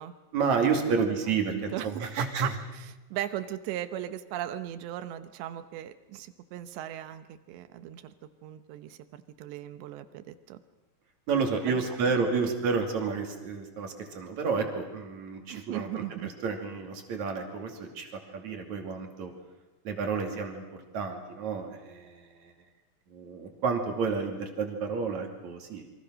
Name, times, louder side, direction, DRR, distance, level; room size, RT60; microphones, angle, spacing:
voice 1, 0.3-2.5 11.3-16.0 16.4-18.1 18.3-19.3 19.9-20.6 20.9-22.5 23.1-25.8, right 5 dB, 45° right, 4 dB, 3.6 m, -30 dB
voice 2, 0.9-1.9 2.4-8.1 8.4-10.6 11.7-12.2 15.5-16.3, right 12 dB, 85° right, 11 dB, 3.3 m, -38 dB
28.0 x 24.0 x 6.4 m, 1.1 s
omnidirectional pair, 4.9 m